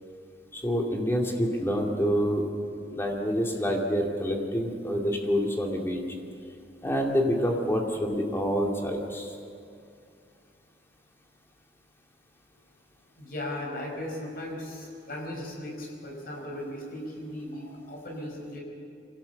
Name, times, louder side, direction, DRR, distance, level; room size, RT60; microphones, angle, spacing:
voice 1, 0.5-2.4 2.9-6.0 6.8-9.4, equal, 15° left, 0 dB, 2.4 m, -27 dB
voice 2, 13.2-18.6, left 1 dB, 55° left, 0 dB, 5.3 m, -37 dB
24.0 x 17.5 x 7.0 m, 2.4 s
head